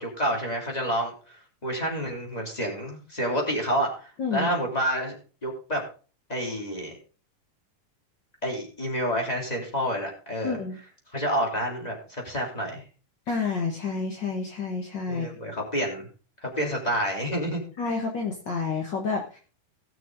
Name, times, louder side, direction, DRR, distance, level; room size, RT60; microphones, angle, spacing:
voice 1, 0.0-1.4 1.6-5.1 5.4-5.8 6.3-6.9 8.4-10.6 11.1-12.8 15.1-16.1 16.4-17.6, equal, 10° left, 0 dB, 2.9 m, -29 dB
voice 2, 4.2-4.5 10.4-10.8 13.3-15.3 17.8-19.4, left 4 dB, 55° left, 1 dB, 1.2 m, -29 dB
18.0 x 6.3 x 3.8 m, 0.36 s
omnidirectional pair, 3.9 m